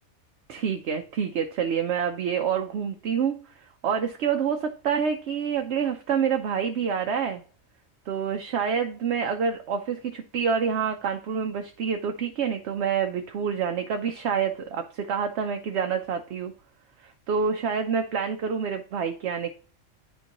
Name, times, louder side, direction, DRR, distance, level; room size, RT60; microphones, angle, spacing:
voice 1, 0.5-3.4 3.8-7.4 8.1-16.5 17.0-19.5, right 7 dB, 65° right, 5 dB, 0.9 m, -27 dB
9.9 x 4.5 x 2.9 m, 0.41 s
omnidirectional pair, 1.3 m